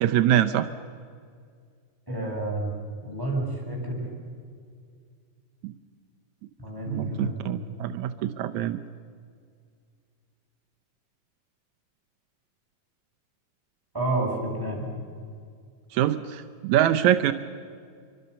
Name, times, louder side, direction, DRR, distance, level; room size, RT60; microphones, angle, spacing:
voice 1, 0.0-0.7 5.6-5.7 6.9-8.8 15.9-17.3, right 11 dB, 85° right, 10 dB, 1.6 m, -24 dB
voice 2, 2.1-2.7 3.0-4.1 6.6-7.3 13.9-14.9, right 2 dB, 5° right, -4 dB, 7.5 m, -29 dB
26.0 x 24.5 x 6.9 m, 2.2 s
omnidirectional pair, 4.3 m